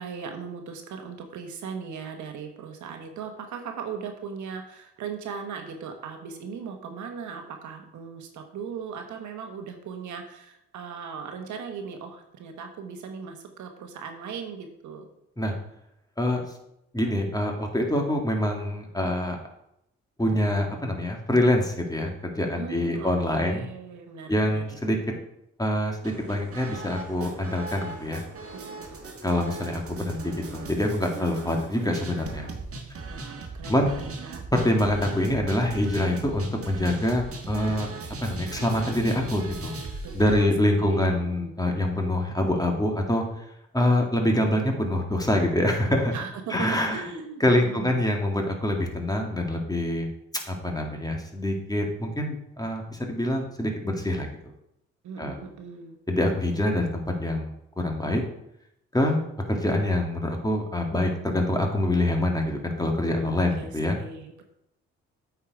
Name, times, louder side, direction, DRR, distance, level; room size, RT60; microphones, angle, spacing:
voice 1, 0.0-15.1 22.5-24.8 28.5-29.0 33.1-34.4 34.8-34.9 40.0-40.5 40.8-41.5 46.1-48.0 55.0-56.0 63.1-64.4, right 6 dB, 70° right, 5 dB, 1.2 m, -38 dB
voice 2, 16.9-19.4 20.2-23.7 24.3-25.0 25.6-28.2 29.2-32.5 33.7-33.9 34.5-37.9 38.2-39.8 40.1-43.4 43.7-46.1 46.5-47.0 47.4-50.1 50.5-54.3 55.2-55.4 56.1-57.5 57.8-58.2 58.9-59.2 59.5-64.0, left 1 dB, 10° left, 2 dB, 2.0 m, -25 dB
sound 1, 26.0-40.4, right 3 dB, 45° right, 1.5 m, -39 dB
8.4 x 4.9 x 4.8 m, 0.79 s
supercardioid pair, 55°, 30 cm